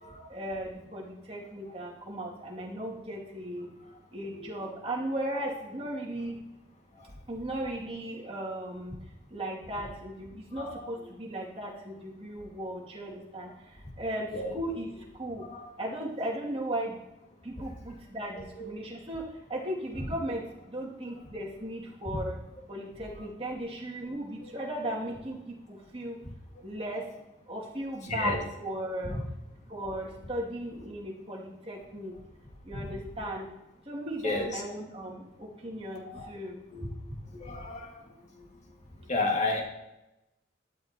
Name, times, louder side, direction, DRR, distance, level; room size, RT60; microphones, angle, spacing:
voice 1, 0.3-3.7 4.1-6.4 7.3-8.9 9.3-13.5 14.0-14.9 15.2-15.4 15.8-17.0 17.4-19.2 19.5-20.4 20.7-22.4 22.7-26.1 26.6-27.0 27.5-29.2 29.7-32.1 32.7-33.5 33.9-36.6, right 1 dB, 30° right, -4 dB, 2.5 m, -36 dB
voice 2, 15.4-15.7 18.6-18.7 28.1-28.4 29.1-29.2 32.7-32.8 34.2-34.6 36.1-36.3 36.7-36.9 37.3-38.0 38.4-38.5 39.1-39.6, left 2 dB, 40° left, 1 dB, 2.0 m, -32 dB
12.5 x 11.5 x 2.9 m, 0.94 s
head